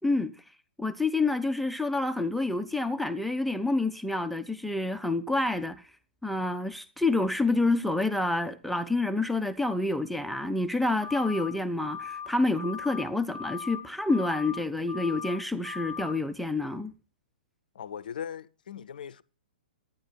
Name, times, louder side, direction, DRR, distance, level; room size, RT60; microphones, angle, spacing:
voice 1, 0.0-0.3 0.8-5.9 6.2-16.9, left 2 dB, ahead, 0.5 m, -28 dB
sound 1, 11.0-11.5 11.8-12.3 12.5-13.0 13.3-13.8 14.1-14.6 14.9-15.4 15.6-16.1, left 6 dB, 85° right, 1.5 m, -38 dB
voice 2, 17.7-19.2, left 8 dB, 65° left, 0.5 m, -39 dB
12.0 x 9.7 x 4.5 m
figure-of-eight pair, 115°, 5 cm